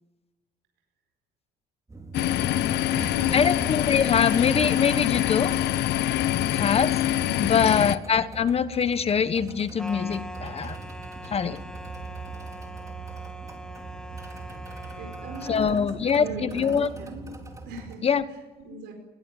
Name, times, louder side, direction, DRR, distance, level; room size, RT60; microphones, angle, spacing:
sound 1, 1.9-18.0, right 3 dB, 20° right, 4.1 m, -42 dB
sound 2, 2.1-8.0, left 13 dB, 80° left, 1.1 m, -25 dB
voice 1, 2.1-3.4 7.2-7.9 14.9-17.3 17.6-18.9, right 2 dB, 85° right, 3 dB, 4.8 m, -40 dB
voice 2, 3.3-5.5 6.5-6.9 7.4-10.8 11.2-11.6 15.5-16.9 18.0-18.2, left 6 dB, 35° left, 13 dB, 1.3 m, -23 dB
sound 3, 9.8-15.8, equal, 5° left, 2.3 m, -42 dB
20.5 x 19.0 x 9.2 m, 1.2 s
cardioid pair, 110°, 17 cm